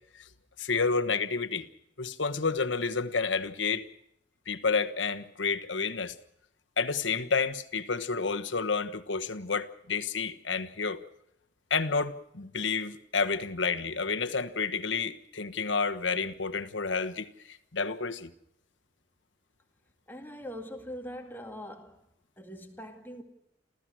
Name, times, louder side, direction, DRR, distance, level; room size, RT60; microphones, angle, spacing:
voice 1, 0.6-1.7 2.0-3.9 4.5-6.1 6.8-11.0 11.7-18.3, left 4 dB, 80° left, 1.3 m, -30 dB
voice 2, 20.1-22.0 22.4-23.2, equal, 10° left, 2.2 m, -42 dB
29.5 x 14.5 x 6.2 m
head